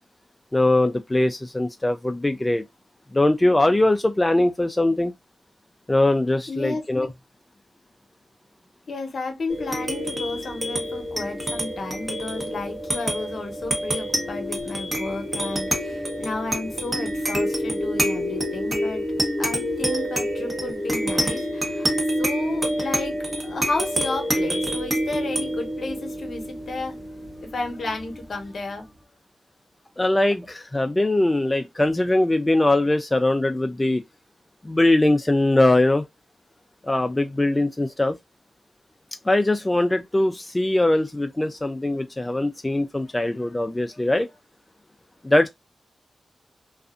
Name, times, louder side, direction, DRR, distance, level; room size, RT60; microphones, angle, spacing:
voice 1, 0.5-2.6 3.1-5.1 5.9-7.1 30.0-34.0 34.6-36.0 36.9-38.1 39.3-44.3 45.2-45.5, left 1 dB, 20° left, 0.3 m, -21 dB
voice 2, 6.5-6.8 8.9-19.0 19.4-21.9 22.2-27.0 27.4-28.9 43.0-43.1 43.9-44.0, left 3 dB, 65° left, 0.8 m, -32 dB
sound 1, 9.5-28.4, equal, 30° right, 1.0 m, -27 dB
2.4 x 2.4 x 2.4 m
cardioid pair, 65°, 0 cm